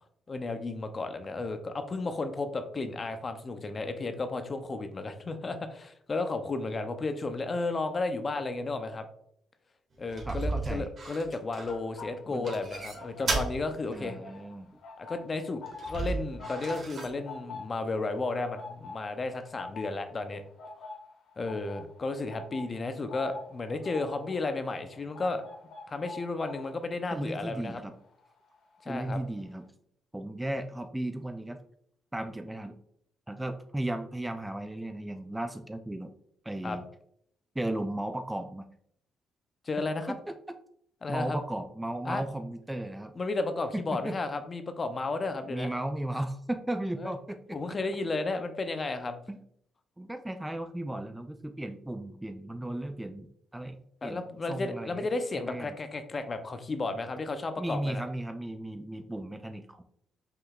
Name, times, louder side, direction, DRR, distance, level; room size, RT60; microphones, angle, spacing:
voice 1, 0.3-9.0 10.0-14.2 15.0-15.6 15.9-20.4 20.8-20.9 21.4-25.4 25.9-27.8 28.8-29.2 36.6-36.8 39.6-40.1 41.0-41.4 42.0-42.2 43.2-45.7 47.0-47.1 47.5-49.2 54.0-58.0, left 3 dB, 35° left, 9 dB, 0.6 m, -33 dB
sound 1, 10.1-12.0 12.4-13.6 13.9-14.0 15.7-17.2, right 3 dB, 50° right, 1.6 m, -34 dB
voice 2, 10.3-10.9 12.3-12.5 13.9-14.7 27.1-27.9 28.9-29.6 30.1-31.6 32.1-32.8 33.3-36.1 36.4-36.8 37.6-38.7 40.1-40.3 41.1-43.1 43.7-44.2 45.5-47.8 49.3-49.4 50.0-53.3 53.5-54.2 54.5-55.1 55.5-55.7 57.6-59.8, right 1 dB, 10° right, 8 dB, 0.3 m, -35 dB
sound 2, 11.6-13.7 14.0-28.9 29.1-29.4, left 3 dB, 80° left, 1.4 m, -46 dB
5.5 x 3.7 x 2.4 m, 0.69 s
cardioid pair, 90°, 0 cm